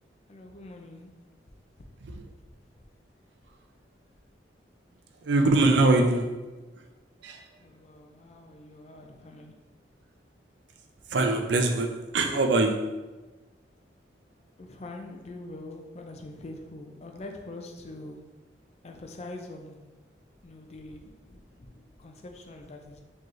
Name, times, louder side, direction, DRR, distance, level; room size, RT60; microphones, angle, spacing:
voice 1, 0.3-1.2 1.8-2.2 7.6-9.6 14.6-18.4 18.8-20.0 20.4-23.0, left 2 dB, 35° left, 3 dB, 0.4 m, -44 dB
voice 2, 5.2-6.5 7.2-7.5 11.1-13.0, right 2 dB, 75° right, 5 dB, 0.5 m, -23 dB
4.3 x 3.0 x 3.1 m, 1.2 s
head